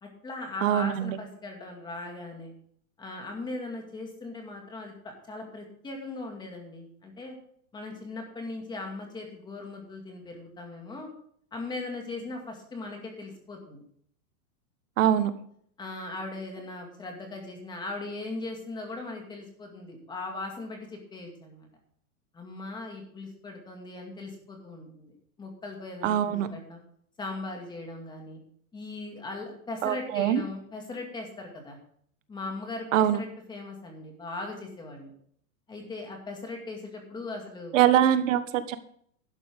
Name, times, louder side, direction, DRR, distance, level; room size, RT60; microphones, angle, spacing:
voice 1, 0.0-2.5 3.0-7.4 7.7-11.1 11.5-13.8 15.0-15.3 15.8-21.7 22.3-26.8 27.2-28.4 28.7-31.8 32.3-35.1 35.7-37.8, left 2 dB, 10° left, 2 dB, 2.1 m, -39 dB
voice 2, 0.6-1.2 15.0-15.3 26.0-26.5 29.8-30.4 32.9-33.2 37.7-38.8, right 10 dB, 60° right, 12 dB, 1.4 m, -23 dB
12.0 x 10.0 x 3.6 m, 0.63 s
supercardioid pair, 170°, 44 cm